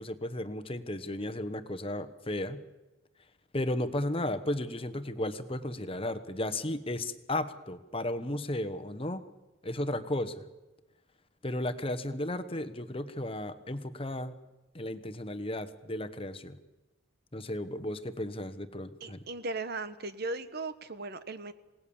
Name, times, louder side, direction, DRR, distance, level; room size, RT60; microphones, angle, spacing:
voice 1, 0.0-2.6 3.5-9.2 9.6-10.4 11.4-14.3 14.7-16.6 17.3-19.2, left 1 dB, 25° left, 10 dB, 1.2 m, -34 dB
voice 2, 19.0-21.5, right 3 dB, 50° right, 13 dB, 1.1 m, -37 dB
28.0 x 19.0 x 7.2 m, 1.1 s
head